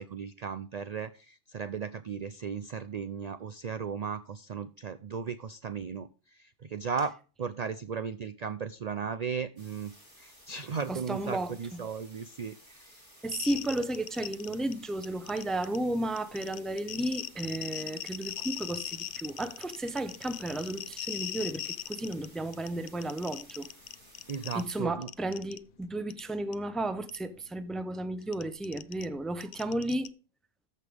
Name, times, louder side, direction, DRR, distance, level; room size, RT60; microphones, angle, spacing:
voice 1, 0.0-7.1 7.4-13.2 24.3-25.1, right 6 dB, 55° right, 0.4 m, -36 dB
sound 1, 9.6-24.8, equal, 15° right, 5.4 m, -56 dB
voice 2, 10.9-11.8 13.2-23.7 24.5-30.1, right 1 dB, ahead, 0.5 m, -33 dB
sound 2, 13.3-14.7 15.0-15.8 16.2-22.2 22.5-24.7 25.0-25.6 26.1-26.2 26.5-26.6 27.1-27.2 28.2-30.1, left 10 dB, 60° left, 0.6 m, -39 dB
14.0 x 5.5 x 3.4 m
omnidirectional pair, 1.3 m